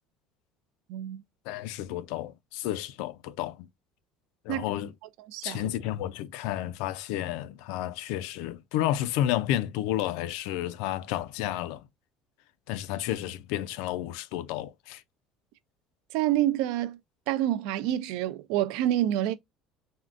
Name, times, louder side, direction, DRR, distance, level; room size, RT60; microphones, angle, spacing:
voice 1, 0.9-1.2 4.5-4.6 5.3-5.7 16.1-17.0 17.3-19.3, right 13 dB, 75° right, 0.3 m, -27 dB
voice 2, 1.5-3.7 4.5-4.9 5.4-11.8 12.7-15.0, left 13 dB, 80° left, 0.4 m, -31 dB
3.6 x 2.2 x 2.4 m
cardioid pair, 180°, 0 cm